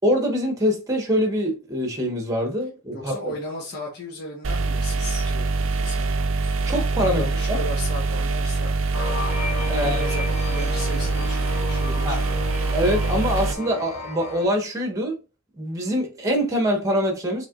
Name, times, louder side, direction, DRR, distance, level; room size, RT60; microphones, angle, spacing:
voice 1, 0.0-3.3 6.7-7.6 9.7-10.0 12.0-12.2 12.7-15.2 15.6-17.5, equal, 15° right, 1.3 m, -24 dB
voice 2, 2.9-6.6 7.1-8.7 9.7-12.5, left 1 dB, 45° left, 1.3 m, -36 dB
Fridge Humming, 4.4-13.5, right 3 dB, 60° right, 0.5 m, -24 dB
sound 1, 8.9-14.4, left 3 dB, 75° left, 2.1 m, -33 dB
6.0 x 3.6 x 2.5 m
head